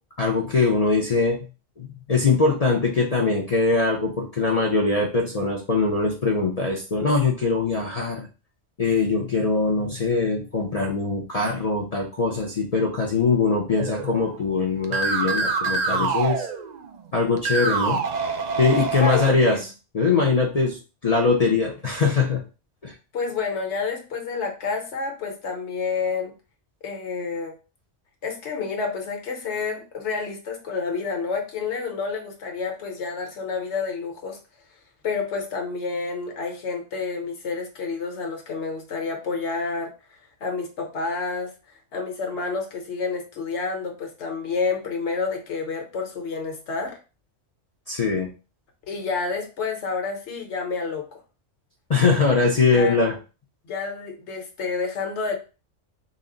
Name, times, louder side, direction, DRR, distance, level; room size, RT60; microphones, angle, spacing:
voice 1, 0.2-1.5 1.8-8.3 8.8-16.5 17.1-18.0 18.6-19.6 19.9-20.8 21.0-22.4 22.8-22.9 47.9-48.3 51.9-53.1, left 4 dB, 40° left, -1 dB, 0.6 m, -22 dB
sound 1, 13.8-14.5 14.8-17.0 17.4-19.3, right 4 dB, 55° right, 0.5 m, -26 dB
voice 2, 18.8-19.6 23.1-26.3 26.8-27.6 28.2-34.4 35.0-39.9 40.4-41.5 41.9-47.0 48.9-51.1 52.7-53.0 53.6-55.4, left 4 dB, 70° left, 2 dB, 1.2 m, -29 dB
4.0 x 2.1 x 3.7 m, 0.33 s
omnidirectional pair, 1.2 m